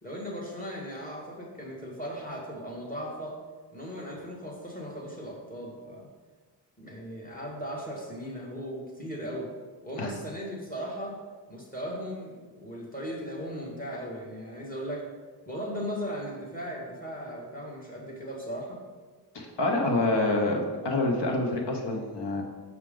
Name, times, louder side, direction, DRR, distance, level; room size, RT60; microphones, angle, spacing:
voice 1, 0.0-3.4 3.7-6.1 6.8-9.5 9.8-11.2 11.5-15.1 15.5-18.8, equal, 20° left, -2 dB, 2.0 m, -37 dB
voice 2, 19.3-22.4, left 2 dB, 80° left, 2 dB, 1.2 m, -27 dB
6.4 x 6.0 x 3.9 m, 1.4 s
cardioid pair, 65°, 41 cm